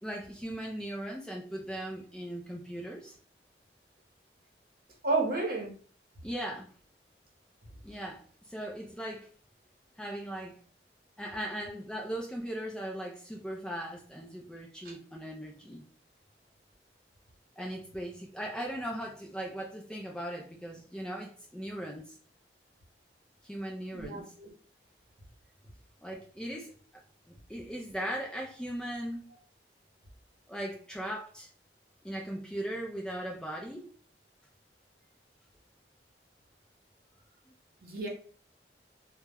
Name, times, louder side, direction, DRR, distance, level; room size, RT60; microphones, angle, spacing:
voice 1, 0.0-3.2 6.2-6.7 7.8-9.3 10.0-10.6 11.2-15.8 17.6-22.2 23.4-24.3 26.0-26.7 27.3-29.3 30.5-31.5 32.0-33.9, right 1 dB, 5° left, -1 dB, 0.3 m, -38 dB
voice 2, 5.0-5.7 23.9-24.5 37.8-38.1, right 3 dB, 55° right, 0 dB, 0.8 m, -31 dB
2.2 x 2.0 x 3.4 m, 0.43 s
head